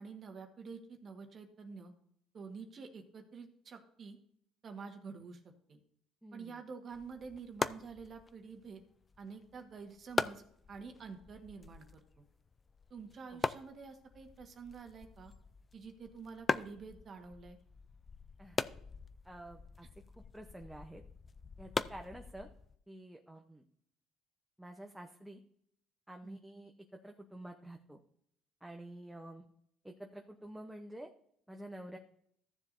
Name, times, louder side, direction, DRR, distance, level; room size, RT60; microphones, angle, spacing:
voice 1, 0.0-1.9 2.3-4.2 4.6-5.4 5.7-5.8 6.3-8.8 9.2-10.4 10.7-12.2 12.9-15.3 15.7-17.6 21.7-21.9 26.2-26.4, right 5 dB, 40° right, 5 dB, 1.4 m, -48 dB
voice 2, 6.2-6.6 13.3-13.4 18.4-18.6 19.2-19.9 20.2-21.0 21.6-22.5 22.9-23.6 24.6-25.4 26.1-28.0 28.6-29.4 29.8-31.1 31.5-32.0, right 1 dB, 5° right, 3 dB, 0.8 m, -49 dB
sound 1, 6.9-22.8, left 4 dB, 25° left, 0.4 m, -42 dB
15.0 x 7.1 x 2.6 m, 0.69 s
cardioid pair, 120°, 0 cm